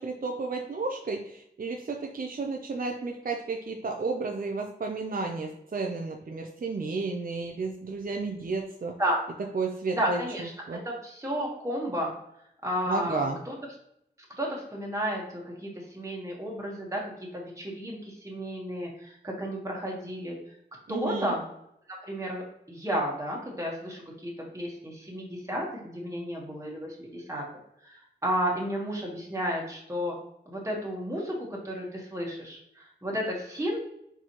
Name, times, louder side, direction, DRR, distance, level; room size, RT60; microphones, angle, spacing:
voice 1, 0.0-8.9 9.5-10.8 12.9-13.4 20.9-21.3, right 3 dB, 55° right, 2 dB, 0.5 m, -32 dB
voice 2, 9.9-12.1 12.6-13.5 14.4-20.3 20.9-21.4 21.9-27.4 27.8-30.2 30.5-33.8, equal, 15° right, -2 dB, 1.2 m, -32 dB
4.4 x 4.1 x 2.9 m, 0.76 s
wide cardioid pair, 85°, 18 cm